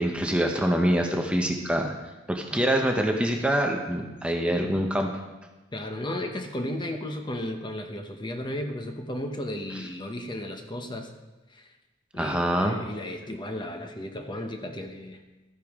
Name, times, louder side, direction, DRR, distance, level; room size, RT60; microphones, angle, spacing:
voice 1, 0.0-1.9 2.3-5.1 12.2-12.8, equal, 5° right, 2 dB, 0.7 m, -25 dB
voice 2, 5.7-11.1 11.5-11.7 12.1-15.2, left 1 dB, 25° left, 5 dB, 0.9 m, -34 dB
13.0 x 9.9 x 3.6 m, 1.1 s
head